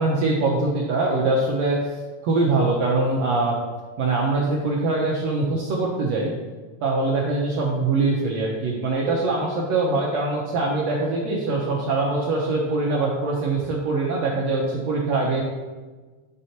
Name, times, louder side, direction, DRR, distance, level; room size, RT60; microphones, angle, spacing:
voice 1, 0.0-1.8 2.2-3.6 4.0-6.3 6.8-15.4, right 3 dB, 70° right, -2 dB, 1.7 m, -23 dB
8.9 x 4.3 x 2.8 m, 1.3 s
omnidirectional pair, 3.6 m